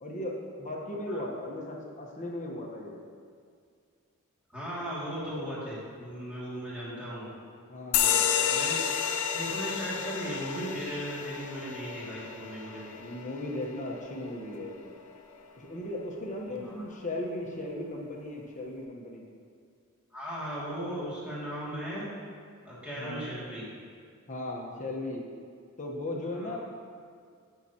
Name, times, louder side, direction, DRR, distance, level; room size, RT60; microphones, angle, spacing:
voice 1, 0.0-3.0 7.7-8.3 13.0-14.7 15.6-19.2 22.9-23.4 24.3-25.2 25.8-26.6, left 1 dB, 35° left, -1 dB, 1.1 m, -37 dB
voice 2, 4.5-7.3 8.0-9.0 9.3-12.9 16.4-16.9 20.1-22.1 22.6-23.7 26.3-26.6, equal, 5° right, -10 dB, 2.4 m, -37 dB
sound 1, 7.9-15.0, left 8 dB, 80° left, 0.5 m, -31 dB
16.0 x 5.8 x 2.9 m, 2.2 s
head